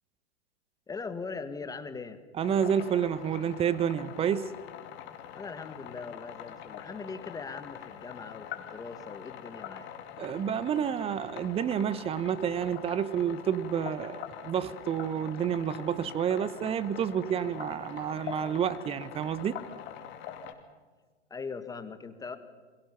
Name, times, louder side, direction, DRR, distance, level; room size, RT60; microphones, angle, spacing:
voice 1, 0.9-2.2 5.3-9.9 21.3-22.4, left 4 dB, 10° left, 11 dB, 1.7 m, -40 dB
sound 1, 2.4-20.5, left 10 dB, 30° left, 2.8 m, -44 dB
voice 2, 2.4-4.5 10.2-19.6, right 8 dB, 15° right, 17 dB, 0.9 m, -29 dB
29.0 x 23.0 x 5.8 m, 1.4 s
figure-of-eight pair, 110°, 35 cm